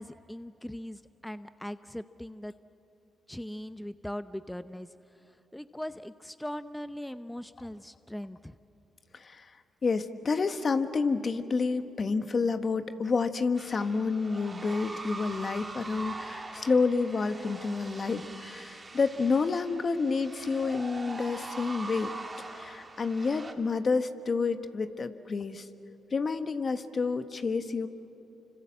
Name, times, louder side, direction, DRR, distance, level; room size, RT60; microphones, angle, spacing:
voice 1, 0.0-2.5 3.3-8.6, left 1 dB, 5° left, 12 dB, 0.8 m, -40 dB
voice 2, 9.1-9.5 9.8-22.1 22.5-25.7 26.1-27.9, left 4 dB, 45° left, 9 dB, 1.4 m, -29 dB
sound 1, 13.6-23.5, right 3 dB, 30° right, 3.2 m, -42 dB
29.5 x 25.5 x 7.5 m, 2.8 s
hypercardioid pair, 45°, 0 cm